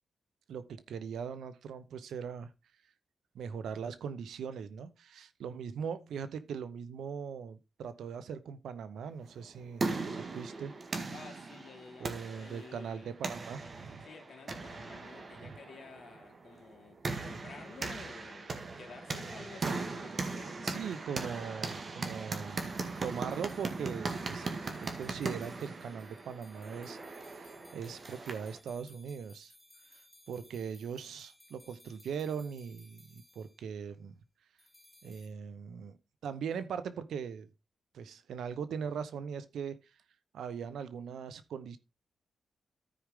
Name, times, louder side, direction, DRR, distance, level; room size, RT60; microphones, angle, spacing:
voice 1, 0.5-2.5 3.3-10.7 12.0-14.1 15.4-15.6 20.6-22.6 23.0-24.5 24.8-29.5 30.3-34.1 35.0-37.5 37.9-39.9 40.3-41.8, right 7 dB, 90° right, 0.9 m, -40 dB
sound 1, 9.4-28.6, right 3 dB, 50° right, 1.8 m, -39 dB
voice 2, 11.1-13.1 14.0-20.9, left 5 dB, 65° left, 2.0 m, -52 dB
sound 2, 22.5-33.6 34.6-35.3, left 1 dB, 5° left, 3.6 m, -61 dB
14.0 x 4.8 x 3.6 m
cardioid pair, 75°, 0 cm